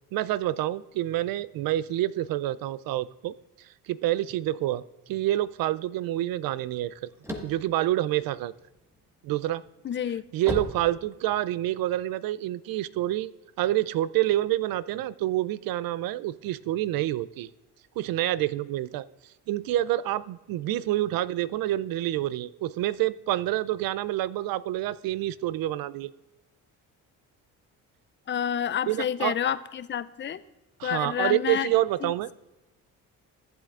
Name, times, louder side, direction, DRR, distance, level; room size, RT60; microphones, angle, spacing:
voice 1, 0.1-3.3 3.9-4.8 5.1-6.9 7.4-8.5 9.2-9.6 10.3-13.3 13.6-17.5 18.0-19.1 19.5-26.1 28.9-29.3 30.8-32.3, right 14 dB, 70° right, 19 dB, 0.5 m, -27 dB
sound 1, 6.8-8.9 9.4-11.6, left 1 dB, 5° right, 1.5 m, -36 dB
voice 2, 9.8-10.2 28.3-30.4 30.8-31.7 32.0-32.1, left 9 dB, 30° left, 15 dB, 0.5 m, -29 dB
14.5 x 7.7 x 2.5 m, 1.0 s
supercardioid pair, 75°, 37 cm